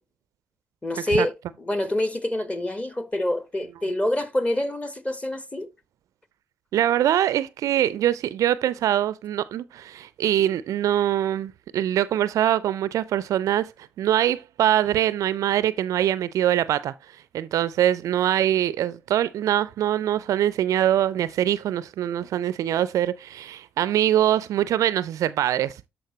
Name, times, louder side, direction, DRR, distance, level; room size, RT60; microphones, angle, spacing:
voice 1, 0.8-5.7, left 1 dB, 20° left, 1.4 m, -26 dB
voice 2, 6.7-13.7 14.0-25.8, right 11 dB, 60° right, 0.4 m, -23 dB
13.0 x 4.4 x 3.0 m
hypercardioid pair, 40°, 6 cm